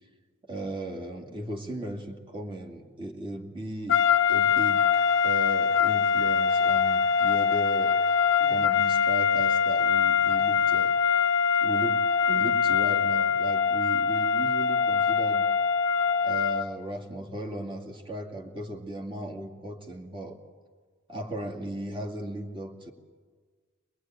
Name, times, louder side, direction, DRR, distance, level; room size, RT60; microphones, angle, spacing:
voice 1, 0.4-4.0 4.3-8.0 8.4-11.3 11.6-15.4 16.2-20.4 21.1-22.9, right 1 dB, 25° right, 0 dB, 2.4 m, -37 dB
sound 1, 3.9-16.7, left 6 dB, 60° left, 0.6 m, -23 dB
24.0 x 20.5 x 9.2 m, 1.5 s
head